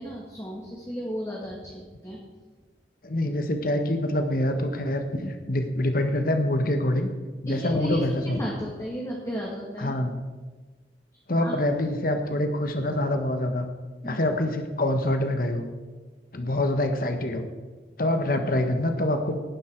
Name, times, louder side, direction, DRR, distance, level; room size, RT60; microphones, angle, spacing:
voice 1, 0.0-2.2 7.5-8.0 8.4-10.0 11.4-11.5 14.0-14.2, equal, 15° left, -3 dB, 1.9 m, -34 dB
voice 2, 3.0-7.1 7.4-8.4 9.8-10.1 11.3-13.7 14.0-15.7 16.3-17.5 18.0-19.4, left 1 dB, 55° left, 6 dB, 1.2 m, -25 dB
18.0 x 9.8 x 4.5 m, 1.3 s
head